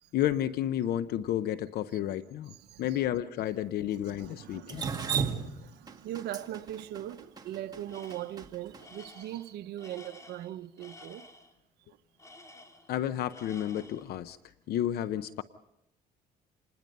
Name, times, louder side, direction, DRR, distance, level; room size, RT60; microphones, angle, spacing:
voice 1, 0.1-4.9 12.9-14.4 14.7-15.4, left 11 dB, 65° left, 0.7 m, -31 dB
voice 2, 2.6-3.0 3.9-11.2, right 13 dB, 75° right, 0.9 m, -41 dB
Drip, 4.7-8.8, right 6 dB, 25° right, 1.9 m, -34 dB
Tools, 7.9-8.5 8.8-11.5 12.2-13.0 13.3-14.1, left 2 dB, 20° left, 2.7 m, -52 dB
27.0 x 20.0 x 5.4 m
cardioid pair, 110°, 17 cm